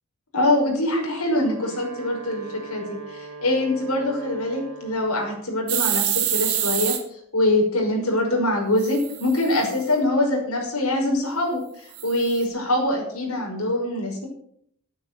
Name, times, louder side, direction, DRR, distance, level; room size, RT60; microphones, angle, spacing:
voice 1, 0.3-14.3, left 1 dB, 75° left, 0 dB, 5.6 m, -24 dB
Wind instrument woodwind instrument, 1.1-5.4, right 4 dB, 90° right, 3.6 m, -40 dB
sound 1, 5.7-7.0 8.8-9.8 11.9-12.4, right 11 dB, 65° right, 2.3 m, -26 dB
11.0 x 9.5 x 7.8 m, 0.67 s
head